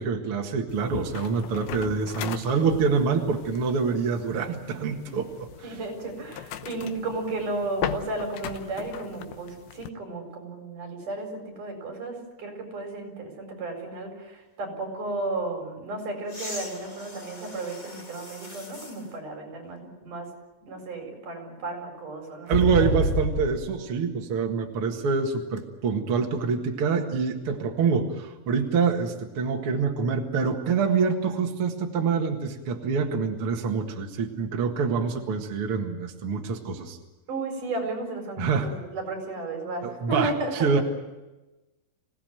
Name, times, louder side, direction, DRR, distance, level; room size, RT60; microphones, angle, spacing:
voice 1, 0.0-5.5 22.5-37.0 38.4-38.7 39.8-40.8, right 5 dB, 45° right, 2 dB, 2.3 m, -26 dB
sound 1, 0.7-9.9, left 10 dB, 80° left, 2.8 m, -39 dB
voice 2, 5.6-20.3 20.6-22.9 37.3-40.7, right 2 dB, 60° right, 4 dB, 5.8 m, -34 dB
sound 2, 16.3-19.0 19.7-19.8 22.5-23.7 25.6-25.7, left 2 dB, 55° left, 0.5 m, -31 dB
26.0 x 17.0 x 9.2 m, 1.1 s
omnidirectional pair, 4.1 m